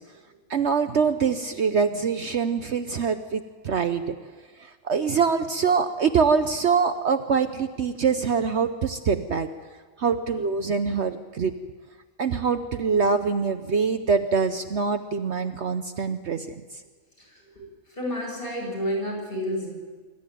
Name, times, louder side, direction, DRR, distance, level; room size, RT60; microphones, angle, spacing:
voice 1, 0.5-4.1 4.6-9.5 10.0-11.5 12.2-16.5, right 5 dB, 55° right, 9 dB, 1.1 m, -24 dB
voice 2, 17.2-17.6 18.0-19.7, equal, 40° left, -3 dB, 7.9 m, -30 dB
26.0 x 13.0 x 9.2 m, 1.4 s
omnidirectional pair, 1.5 m